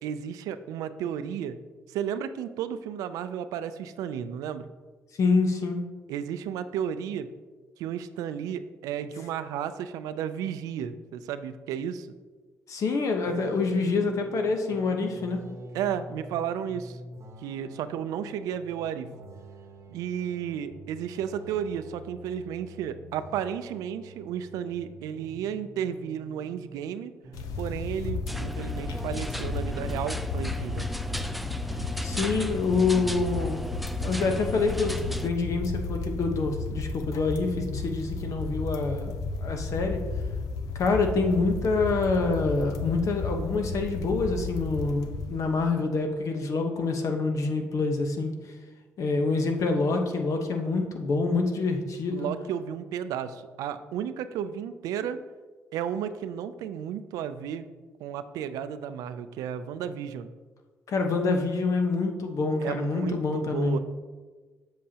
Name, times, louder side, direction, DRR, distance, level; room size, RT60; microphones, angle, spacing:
voice 1, 0.0-1.6 1.9-4.7 6.1-7.3 7.8-12.1 15.7-17.0 17.4-19.1 19.9-27.1 27.6-30.9 52.1-55.2 55.7-57.7 58.0-60.3 62.6-63.8, right 9 dB, 90° right, 11 dB, 0.4 m, -33 dB
voice 2, 5.2-5.8 12.7-15.4 32.0-33.6 34.0-39.1 39.4-40.0 40.7-48.3 49.0-52.3 60.9-63.8, left 3 dB, 65° left, 4 dB, 1.0 m, -26 dB
sound 1, 13.2-27.0 27.2-28.4, right 1 dB, 55° right, 0.9 m, -47 dB
sound 2, 27.3-45.7, left 3 dB, 85° left, 0.6 m, -33 dB
sound 3, 28.3-35.3, equal, ahead, 0.4 m, -37 dB
7.6 x 7.4 x 2.9 m, 1.4 s
cardioid pair, 70°, 6 cm